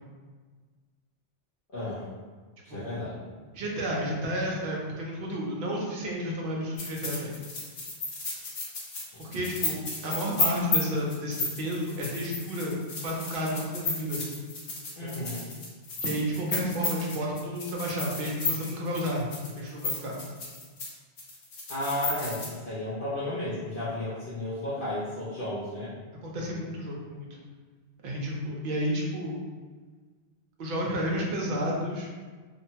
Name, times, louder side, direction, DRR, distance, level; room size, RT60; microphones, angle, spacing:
voice 1, 1.7-2.0 2.6-3.2 9.1-9.2 15.0-15.4 21.7-25.9, left 1 dB, 55° left, -10 dB, 0.7 m, -33 dB
voice 2, 3.5-7.3 9.2-14.2 15.0-15.2 16.0-19.3 19.6-20.2 26.2-27.3 28.0-29.4 30.6-32.1, equal, 60° right, -2 dB, 0.7 m, -31 dB
sound 1, 6.8-20.9 21.2-22.5, left 3 dB, 85° left, 1.1 m, -33 dB
2.6 x 2.1 x 2.7 m, 1.4 s
omnidirectional pair, 1.2 m